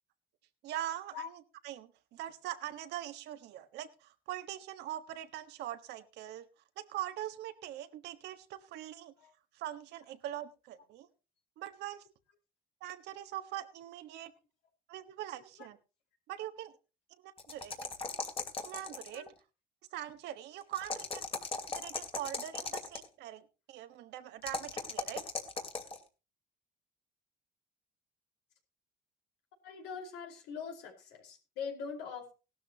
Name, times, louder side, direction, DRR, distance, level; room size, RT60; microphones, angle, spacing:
voice 1, 0.6-6.5 6.8-9.1 9.5-11.1 11.6-12.1 12.8-14.3 14.9-15.8 16.3-16.7 17.2-17.8 18.6-19.3 19.9-21.2 21.7-25.2, right 12 dB, 85° right, 9 dB, 1.4 m, -42 dB
sound 1, 17.4-19.3 20.7-23.1 24.4-26.0, left 4 dB, 35° left, 2.6 m, -38 dB
voice 2, 29.6-32.3, left 6 dB, 90° left, 2 dB, 4.6 m, -42 dB
17.5 x 12.5 x 2.9 m, 0.31 s
cardioid pair, 110°, 17 cm